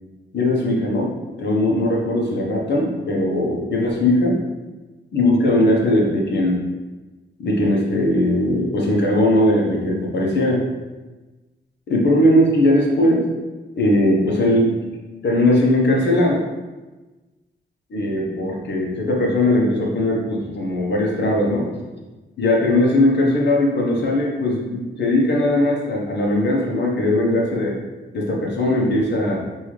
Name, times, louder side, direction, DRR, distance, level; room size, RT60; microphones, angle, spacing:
voice 1, 0.3-1.1 1.4-4.4 5.1-6.7 7.4-10.6 11.9-13.2 13.8-14.9 15.2-16.4 17.9-21.7 22.4-27.8 28.1-29.4, left 1 dB, 60° left, -2 dB, 1.0 m, -19 dB
5.4 x 2.7 x 3.1 m, 1.2 s
wide cardioid pair, 135°, 20 cm